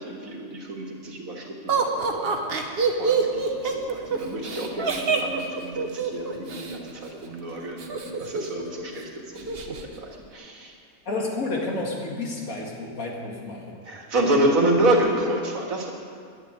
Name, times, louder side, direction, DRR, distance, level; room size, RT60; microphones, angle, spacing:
voice 1, 0.0-10.7 13.8-15.9, right 1 dB, 75° right, 0 dB, 2.3 m, -28 dB
Laughter, 1.7-6.7 7.8-8.6 8.9-9.0 9.4-9.8, right 5 dB, 50° right, 1.2 m, -26 dB
voice 2, 11.1-13.8, left 2 dB, 80° left, -1 dB, 2.5 m, -30 dB
11.0 x 8.4 x 9.6 m, 2.3 s
omnidirectional pair, 1.4 m